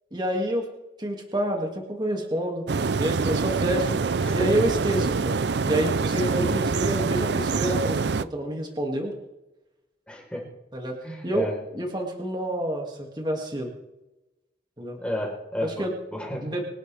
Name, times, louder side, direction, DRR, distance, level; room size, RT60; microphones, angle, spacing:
voice 1, 0.1-0.7 1.0-2.7 3.0-4.0 4.3-5.4 5.6-9.2 10.7-13.7 14.8-15.0 15.6-15.9 16.4-16.6, right 1 dB, 25° right, 1 dB, 2.3 m, -28 dB
sound 1, 2.7-8.2, right 4 dB, 75° right, 0.5 m, -25 dB
voice 2, 10.1-10.4 11.0-11.5 15.0-16.5, left 1 dB, 5° left, -1 dB, 4.1 m, -32 dB
24.5 x 11.5 x 3.5 m, 0.97 s
head